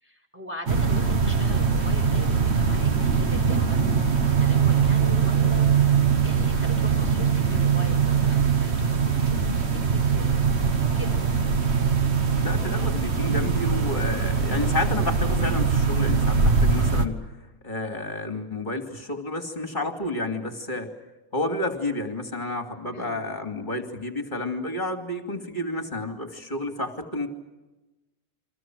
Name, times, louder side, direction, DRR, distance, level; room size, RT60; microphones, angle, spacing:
voice 1, 0.0-10.5 10.9-11.2 22.9-23.2, left 1 dB, 5° right, 0 dB, 5.0 m, -41 dB
sound 1, 0.7-17.1, right 6 dB, 45° right, 1.5 m, -22 dB
voice 2, 12.3-17.2 17.6-20.9 21.3-27.3, left 2 dB, 30° left, 5 dB, 2.8 m, -30 dB
29.5 x 23.5 x 6.3 m, 1.1 s
omnidirectional pair, 1.7 m